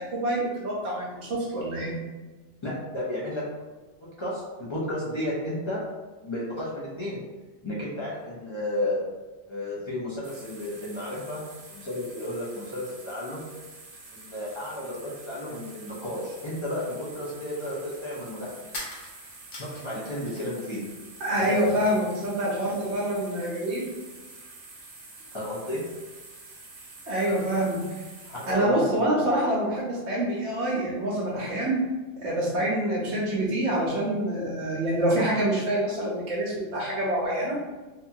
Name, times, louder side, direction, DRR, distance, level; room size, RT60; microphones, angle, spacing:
voice 1, 0.0-1.9 21.2-23.9 27.1-28.0 28.5-31.8 32.2-37.6, right 1 dB, 80° right, -5 dB, 1.0 m, -26 dB
voice 2, 2.6-3.4 4.2-5.8 6.2-7.2 7.6-9.0 9.5-11.4 11.7-13.4 14.1-18.5 19.6-20.8 21.4-21.5 25.3-25.8 27.3-27.5 28.2-28.9, left 1 dB, 40° left, -7 dB, 0.4 m, -32 dB
sound 1, 10.2-28.5, right 3 dB, 55° right, 0.7 m, -47 dB
sound 2, 18.7-20.6 20.9-21.8, left 1 dB, 85° left, 1.2 m, -42 dB
2.8 x 2.3 x 2.6 m, 1.2 s
omnidirectional pair, 1.2 m